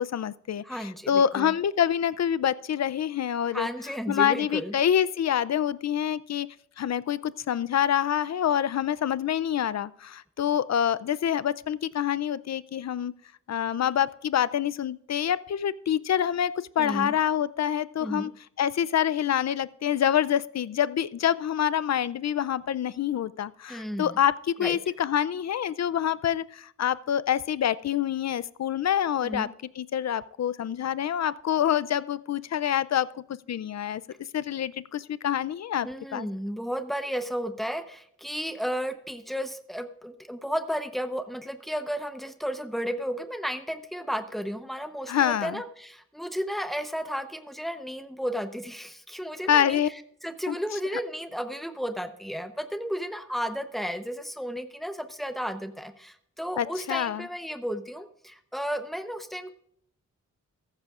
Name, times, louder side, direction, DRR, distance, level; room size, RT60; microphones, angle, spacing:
voice 1, 0.0-3.7 4.1-6.5 6.8-13.1 13.5-18.3 18.6-29.5 29.8-34.0 34.3-36.3 45.1-45.6 49.5-49.9 50.5-50.6 56.6-57.3, left 9 dB, 60° left, 18 dB, 0.5 m, -26 dB
voice 2, 0.6-1.5 3.5-4.7 16.8-17.1 18.0-18.3 23.7-24.1 24.6-24.8 29.2-29.5 35.8-49.8 50.2-59.5, equal, ahead, 8 dB, 0.8 m, -33 dB
14.5 x 14.0 x 2.4 m, 0.68 s
wide cardioid pair, 165°, 31 cm